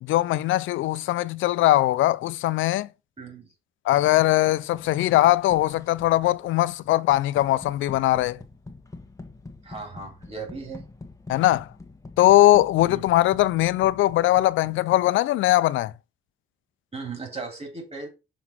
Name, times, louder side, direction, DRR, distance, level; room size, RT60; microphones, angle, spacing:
voice 1, 0.0-2.9 3.9-8.4 11.3-11.7 12.2-15.9, left 15 dB, 80° left, 0.5 m, -20 dB
voice 2, 3.2-3.5 9.6-10.8 12.9-13.0 16.9-18.1, right 4 dB, 30° right, 3.2 m, -37 dB
sound 1, 4.5-15.3, left 2 dB, 15° left, 1.3 m, -46 dB
6.0 x 3.9 x 5.8 m
cardioid pair, 90°, 20 cm